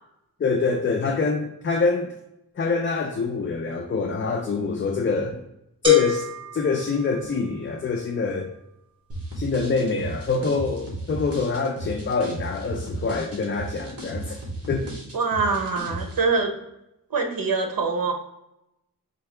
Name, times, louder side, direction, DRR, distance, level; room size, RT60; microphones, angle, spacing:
voice 1, 0.4-2.1 2.6-5.4 5.8-6.3 6.5-8.5 9.4-14.4 14.7-14.9, left 4 dB, 35° left, 3 dB, 0.4 m, -25 dB
sound 1, 5.8-7.7, left 9 dB, 15° right, 1.0 m, -23 dB
sound 2, 9.1-16.2, right 1 dB, 40° right, 1.4 m, -35 dB
voice 2, 15.1-16.5 17.1-18.1, right 4 dB, 70° right, 3 dB, 0.9 m, -24 dB
4.4 x 2.8 x 3.2 m, 0.87 s
wide cardioid pair, 140°, 36 cm